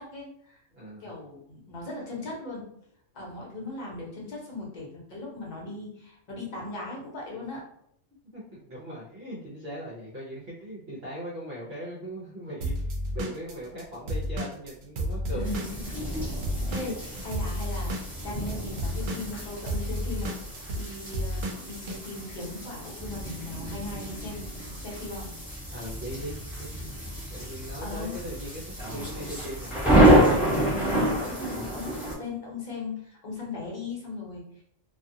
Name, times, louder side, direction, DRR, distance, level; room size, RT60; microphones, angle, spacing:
voice 1, 0.0-0.6 1.0-2.6 3.1-7.6 15.3-15.9 16.7-16.9 17.2-20.3 20.7-25.3 27.8-28.2 30.5-34.6, left 3 dB, 35° left, -3 dB, 0.9 m, -38 dB
voice 2, 0.7-1.1 8.3-16.4 16.8-17.0 25.7-26.8 27.3-29.7 31.4-31.7, equal, 55° right, -6 dB, 0.9 m, -39 dB
Drum kit / Drum, 12.6-16.2 16.4-22.0, equal, 85° right, 1.0 m, -31 dB
sound 1, 15.4-32.1, right 1 dB, ahead, 0.8 m, -28 dB
2.5 x 2.3 x 2.7 m, 0.69 s
omnidirectional pair, 1.3 m